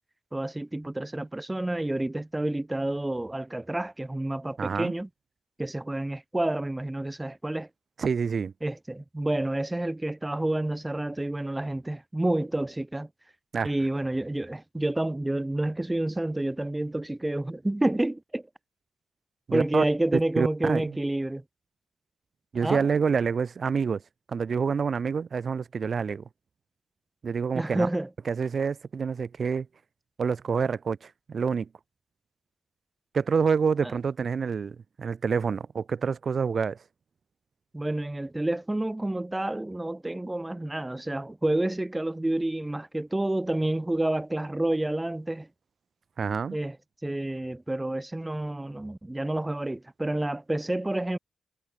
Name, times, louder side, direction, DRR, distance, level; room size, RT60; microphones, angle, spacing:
voice 1, 0.3-5.1 5.6-7.7 8.6-13.1 13.6-18.5 19.5-21.4 22.6-22.9 27.5-28.1 33.8-33.9 37.7-45.5 46.5-46.8 47.0-51.2, right 1 dB, 10° right, 2.9 m, -29 dB
voice 2, 4.6-4.9 8.0-8.5 13.5-13.7 19.5-19.8 20.1-21.0 22.5-24.0 24.3-26.2 27.2-27.9 28.3-29.7 30.2-31.7 33.1-36.8 46.2-46.6, right 6 dB, 45° right, 1.0 m, -27 dB
wide cardioid pair, 125°, 0 cm